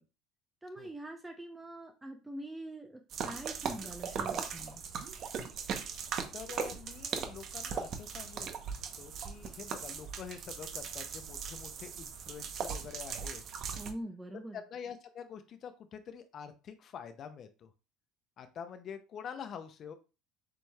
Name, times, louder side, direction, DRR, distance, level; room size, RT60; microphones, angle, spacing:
voice 1, 0.6-4.8 13.8-14.6, right 1 dB, 10° right, 4 dB, 0.6 m, -44 dB
sound 1, 3.1-13.9, right 6 dB, 50° right, 0.8 m, -39 dB
voice 2, 6.3-8.5 9.0-13.4 14.5-17.7 18.4-19.9, left 7 dB, 50° left, 9 dB, 0.5 m, -46 dB
6.9 x 3.1 x 2.3 m, 0.31 s
supercardioid pair, 90°, 0 cm